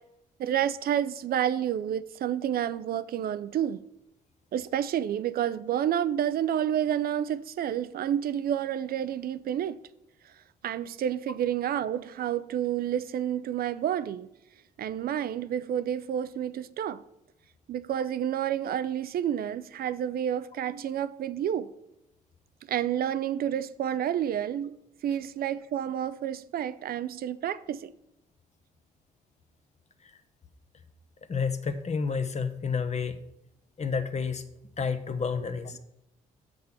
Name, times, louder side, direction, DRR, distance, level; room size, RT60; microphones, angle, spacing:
voice 1, 0.4-3.8 4.5-9.8 10.2-10.3 10.6-14.3 14.8-17.0 17.7-21.7 22.7-24.8 25.0-27.9, right 10 dB, 55° right, 0.4 m, -29 dB
voice 2, 31.3-33.2 33.8-34.4 34.8-35.8, left 5 dB, 35° left, 0.9 m, -30 dB
6.8 x 5.3 x 7.1 m
hypercardioid pair, 45°, 19 cm